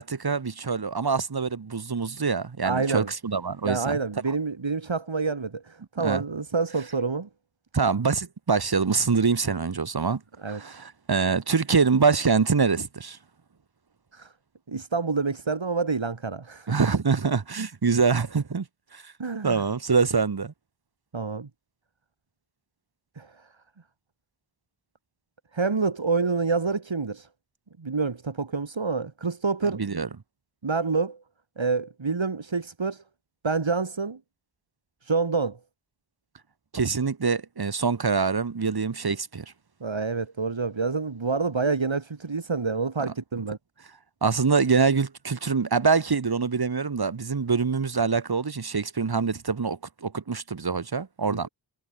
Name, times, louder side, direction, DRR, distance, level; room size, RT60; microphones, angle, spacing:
voice 1, 0.0-4.0 6.0-6.2 7.7-10.2 10.5-13.2 16.7-18.6 18.9-19.0 19.4-20.5 29.7-30.1 36.7-39.4 43.0-43.1 44.2-51.5, right 5 dB, 55° right, 1.3 m, -25 dB
voice 2, 2.6-3.1 3.6-7.3 10.4-10.6 14.1-14.3 14.7-16.9 19.2-19.6 21.1-21.5 23.2-23.5 25.5-27.3 27.8-30.0 30.6-31.2 31.6-33.0 33.4-34.2 35.0-35.6 39.8-43.6 51.3-51.5, right 4 dB, 90° right, 3.4 m, -27 dB
wide cardioid pair, 45°, 45 cm